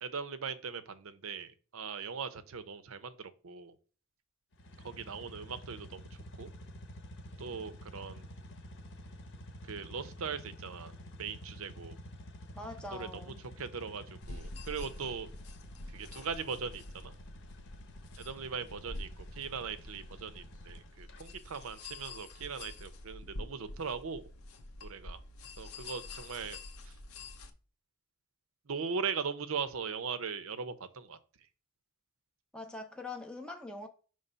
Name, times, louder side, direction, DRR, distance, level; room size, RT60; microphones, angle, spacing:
voice 1, 0.0-3.8 4.8-6.1 6.4-6.5 7.4-8.2 9.6-10.9 11.2-11.9 12.9-15.3 15.9-17.1 18.2-24.2 24.8-25.2 25.6-26.6 26.8-26.9 28.7-31.2, right 5 dB, 75° right, 0.6 m, -40 dB
sound 1, 4.5-21.2, equal, 55° left, 0.9 m, -50 dB
voice 2, 12.6-13.4 32.5-33.9, left 2 dB, 5° left, 0.5 m, -43 dB
sound 2, 14.2-27.5, left 2 dB, 90° left, 0.7 m, -47 dB
5.3 x 3.2 x 5.5 m
head